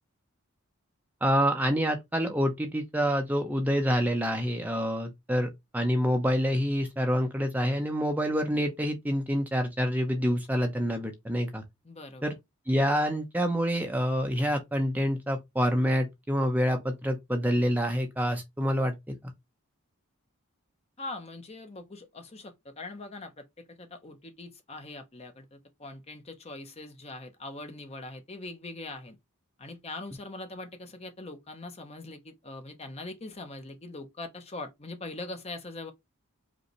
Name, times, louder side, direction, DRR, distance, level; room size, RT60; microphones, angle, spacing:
voice 1, 1.2-11.6 12.2-12.3 12.7-19.2, equal, 5° right, 0.7 m, -27 dB
voice 2, 11.8-12.4 21.0-29.2 29.6-35.9, left 2 dB, 30° left, 0.7 m, -42 dB
5.2 x 2.7 x 3.1 m
head